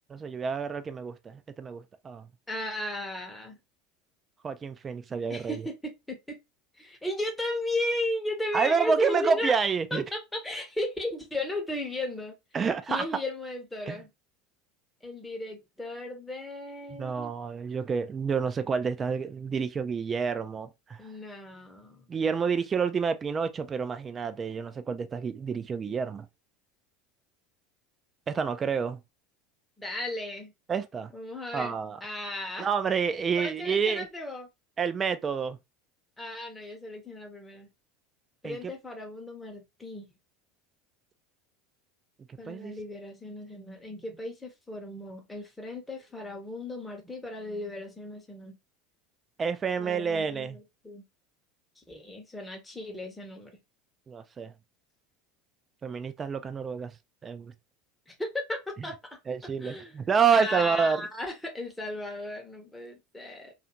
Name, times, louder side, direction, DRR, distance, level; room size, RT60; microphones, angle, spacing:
voice 1, 0.1-2.3 4.4-5.6 8.5-10.0 12.5-13.1 13.9-14.0 16.9-21.0 22.1-26.3 28.3-29.0 30.7-31.1 31.5-32.0 32.6-34.1 34.8-35.6 38.4-38.7 42.3-42.8 49.4-50.6 54.1-54.5 55.8-56.9 57.2-57.5 59.3-61.0, right 6 dB, 30° right, 0.4 m, -29 dB
voice 2, 2.5-3.6 5.3-6.4 6.8-9.5 9.9-12.3 12.9-14.1 15.0-17.3 21.0-22.0 29.8-30.5 31.1-31.7 32.0-32.7 33.4-34.5 36.2-37.7 38.4-40.1 42.4-48.6 49.8-51.0 51.8-53.5 58.1-59.2 59.6-59.9 60.3-63.5, left 1 dB, 10° left, 0.8 m, -35 dB
2.4 x 2.4 x 2.8 m
hypercardioid pair, 80°, 0 cm